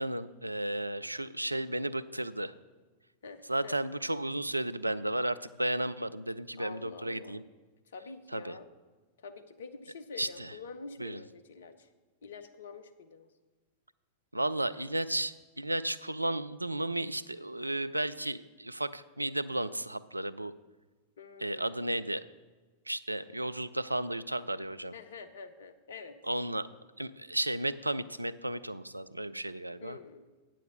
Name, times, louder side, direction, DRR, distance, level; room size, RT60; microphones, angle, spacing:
voice 1, 0.0-2.5 3.5-7.4 8.3-8.6 10.2-10.5 11.0-11.2 14.3-20.5 21.4-22.2 22.9-24.9 26.3-26.7 27.0-30.0, right 1 dB, 85° right, 15 dB, 0.3 m, -33 dB
voice 2, 3.2-3.8 6.6-7.4 7.9-8.7 9.2-11.9 12.2-13.3 21.2-22.1 24.9-26.2 29.8-30.2, left 4 dB, 65° left, 10 dB, 0.7 m, -47 dB
9.1 x 7.5 x 5.3 m, 1.3 s
figure-of-eight pair, 90°, 0 cm